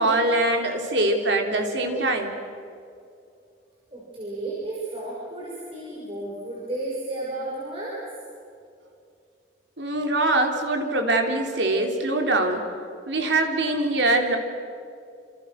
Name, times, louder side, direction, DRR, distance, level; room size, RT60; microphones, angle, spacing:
voice 1, 0.0-2.3 9.8-12.7 13.1-14.4, right 2 dB, 90° right, 3 dB, 3.6 m, -23 dB
voice 2, 3.9-8.0, right 2 dB, 30° right, -6 dB, 6.0 m, -33 dB
28.0 x 27.5 x 6.5 m, 2.4 s
head